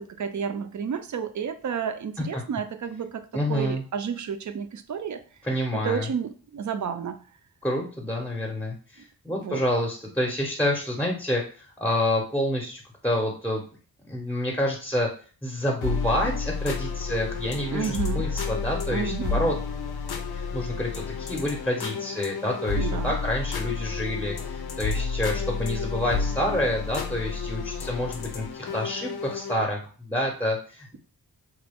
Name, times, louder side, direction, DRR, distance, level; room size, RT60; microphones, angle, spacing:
voice 1, 0.0-5.2 5.8-7.2 9.3-9.6 17.7-18.3 18.9-19.4 22.8-23.1, right 7 dB, 50° right, 9 dB, 0.4 m, -31 dB
voice 2, 3.3-3.8 5.4-6.1 7.6-13.6 14.1-15.1 15.4-19.6 20.3-31.0, left 1 dB, 5° left, -1 dB, 0.7 m, -28 dB
sound 1, 15.8-29.6, left 5 dB, 75° left, 0.6 m, -31 dB
3.0 x 2.2 x 3.4 m, 0.39 s
cardioid pair, 60°, 39 cm